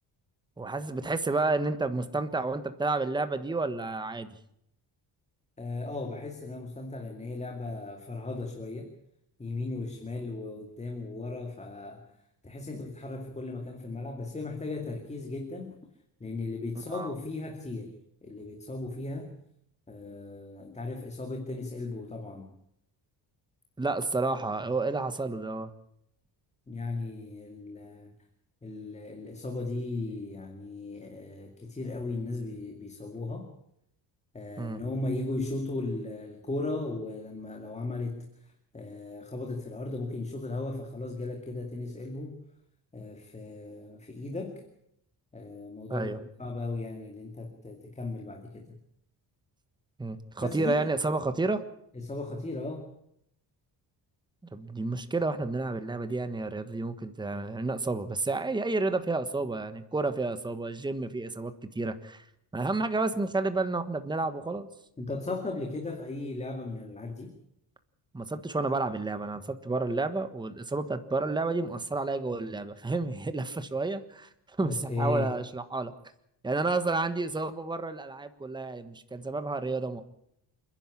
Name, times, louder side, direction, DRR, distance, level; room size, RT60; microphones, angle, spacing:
voice 1, 0.6-4.4 16.9-17.1 23.8-25.7 34.6-34.8 45.9-46.2 50.0-51.6 54.5-62.2 62.5-64.7 68.1-75.9 76.4-80.0, right 3 dB, 10° right, 10 dB, 1.3 m, -30 dB
voice 2, 5.6-8.9 9.4-12.0 12.4-15.8 16.2-17.9 18.2-19.3 19.9-22.5 26.7-28.1 28.6-33.5 34.3-42.4 42.9-44.6 45.3-48.8 50.4-50.9 51.9-52.9 65.0-67.3 74.6-75.4, left 2 dB, 15° left, 3 dB, 2.3 m, -36 dB
28.5 x 11.0 x 9.9 m, 0.76 s
cardioid pair, 150°, 42 cm